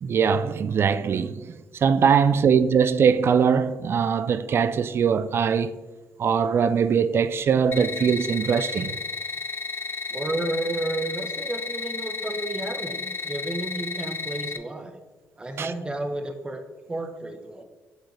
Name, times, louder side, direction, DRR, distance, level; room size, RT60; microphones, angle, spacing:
voice 1, 0.0-1.5 1.8-5.7 6.2-9.0 15.6-15.7, right 6 dB, 45° right, 0.4 m, -21 dB
sound 1, 7.7-14.6, left 4 dB, 45° left, 0.4 m, -33 dB
voice 2, 10.1-15.0 15.4-16.6 16.9-17.6, right 2 dB, 15° right, 0.7 m, -31 dB
7.9 x 4.3 x 3.2 m
cardioid pair, 80°, 5 cm